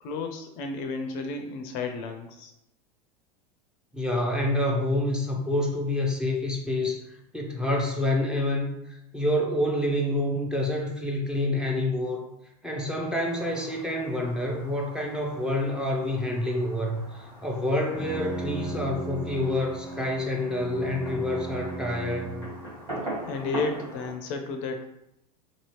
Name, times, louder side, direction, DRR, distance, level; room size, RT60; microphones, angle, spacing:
voice 1, 0.0-2.5 23.3-24.9, left 4 dB, 45° left, 5 dB, 0.4 m, -32 dB
voice 2, 3.9-7.0 7.3-12.2 12.6-22.4, left 1 dB, 5° right, -1 dB, 0.5 m, -27 dB
Fireworks, 13.2-24.1, right 1 dB, 85° right, 1.4 m, -42 dB
Bowed string instrument, 17.9-22.8, right 2 dB, 20° right, 1.4 m, -36 dB
2.8 x 2.7 x 2.9 m, 0.84 s
figure-of-eight pair, 85°, 21 cm